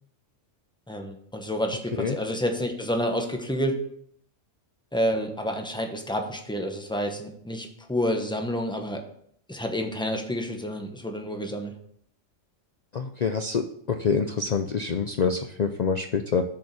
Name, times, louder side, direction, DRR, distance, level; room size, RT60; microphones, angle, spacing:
voice 1, 0.9-3.8 4.9-9.0 9.5-11.7, equal, 5° left, 4 dB, 0.9 m, -29 dB
voice 2, 12.9-16.4, left 5 dB, 50° left, 7 dB, 0.5 m, -26 dB
7.2 x 5.3 x 6.8 m, 0.66 s
omnidirectional pair, 1.3 m